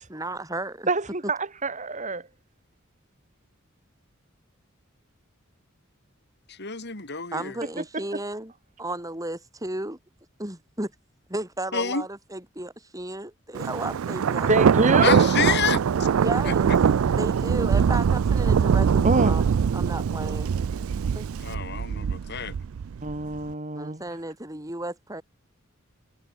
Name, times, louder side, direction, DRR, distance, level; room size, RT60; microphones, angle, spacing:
voice 1, 0.0-0.9 7.3-8.5 8.8-10.0 10.4-10.9 11.3-14.9 16.2-16.7 17.2-19.4 19.7-20.6 21.1-21.2 23.7-25.2, right 1 dB, 15° right, 6.3 m, -34 dB
voice 2, 0.9-2.3 7.8-8.2 14.5-15.3 19.0-19.4 23.0-24.0, right 2 dB, 35° right, 3.0 m, -26 dB
voice 3, 6.5-7.5 11.7-12.0 15.0-15.8 16.4-16.5 21.4-22.5, left 6 dB, 55° left, 4.5 m, -28 dB
Thunder, 13.5-23.4, right 7 dB, 85° right, 0.4 m, -22 dB
head